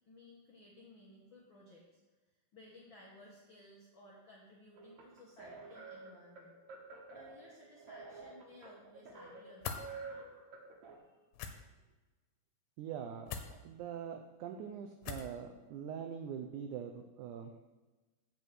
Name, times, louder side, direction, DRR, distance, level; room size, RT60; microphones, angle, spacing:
voice 1, 0.1-2.0 2.5-6.5 7.1-9.9 11.0-11.2, left 1 dB, 65° left, -5 dB, 1.2 m, -58 dB
sound 1, 4.8-11.0, right 4 dB, 60° right, 2.3 m, -50 dB
sound 2, 9.6-9.8 11.3-11.5 13.3-13.5 15.0-15.4, left 7 dB, 85° left, 2.7 m, -41 dB
voice 2, 12.8-17.6, right 8 dB, 90° right, 4 dB, 1.7 m, -43 dB
7.7 x 5.5 x 7.6 m, 1.2 s
omnidirectional pair, 4.3 m